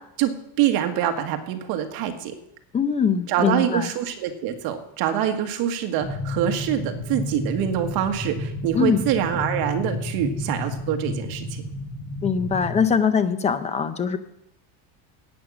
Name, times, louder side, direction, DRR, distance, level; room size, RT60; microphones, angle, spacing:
voice 1, 0.2-2.3 3.3-11.6, right 10 dB, 55° right, 6 dB, 1.6 m, -25 dB
voice 2, 2.7-3.9 8.7-9.1 12.2-14.2, left 6 dB, 15° left, 12 dB, 0.5 m, -22 dB
sound 1, 6.0-12.8, left 2 dB, 35° left, 3.0 m, -31 dB
11.0 x 9.0 x 6.1 m, 0.80 s
cardioid pair, 165°, 43 cm